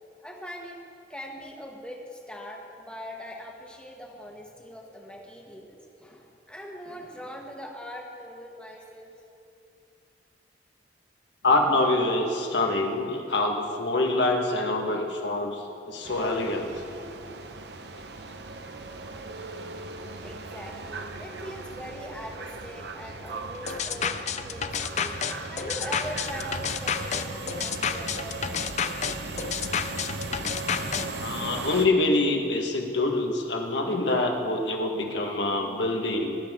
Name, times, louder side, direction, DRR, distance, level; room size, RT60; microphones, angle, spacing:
voice 1, 0.2-0.8 1.1-9.1 20.2-24.2 24.5-28.5, equal, 5° left, 0 dB, 1.4 m, -41 dB
voice 2, 11.4-16.7 31.0-36.4, left 2 dB, 80° left, 2 dB, 1.6 m, -25 dB
sound 1, 16.0-31.9, right 2 dB, 70° right, 0.9 m, -37 dB
sound 2, 23.7-31.1, left 7 dB, 40° left, 0.5 m, -30 dB
21.5 x 12.0 x 3.7 m, 2.6 s
head